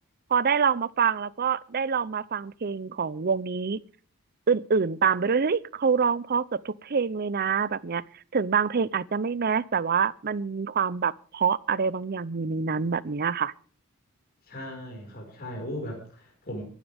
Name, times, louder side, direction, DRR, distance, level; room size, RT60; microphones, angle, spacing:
voice 1, 0.3-3.8 4.5-8.0 8.3-13.5, right 6 dB, 45° right, 0.6 m, -26 dB
voice 2, 14.5-16.6, equal, 45° left, 5.0 m, -37 dB
23.5 x 12.5 x 3.5 m
head